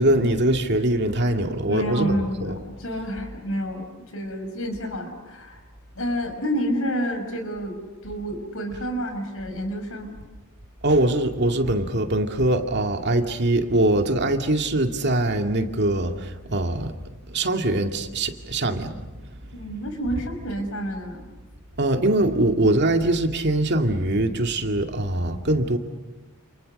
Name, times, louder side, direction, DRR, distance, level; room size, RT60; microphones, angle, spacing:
voice 1, 0.0-2.6 10.8-16.9 17.3-18.9 21.8-25.8, right 1 dB, 50° right, 5 dB, 2.3 m, -22 dB
voice 2, 1.7-3.9 4.1-5.6 6.0-10.1 19.5-21.3, equal, 65° left, 6 dB, 5.6 m, -29 dB
29.5 x 29.0 x 6.6 m, 1.2 s
head